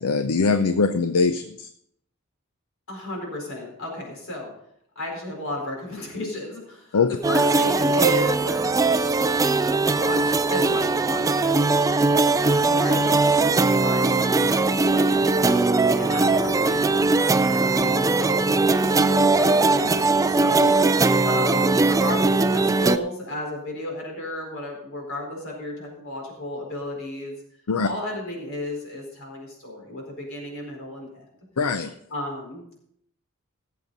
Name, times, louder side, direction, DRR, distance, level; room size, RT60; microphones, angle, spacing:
voice 1, 0.0-1.7 6.9-7.1 27.7-27.9 31.6-31.9, left 4 dB, 85° left, 9 dB, 0.6 m, -22 dB
voice 2, 2.9-4.5 4.9-7.0 7.3-8.6 9.8-20.7 21.2-27.4 27.8-31.2 32.1-32.6, left 1 dB, 65° left, 0 dB, 4.5 m, -33 dB
sound 1, 7.2-23.0, right 3 dB, 15° right, 0.3 m, -20 dB
17.0 x 7.7 x 4.0 m, 0.72 s
head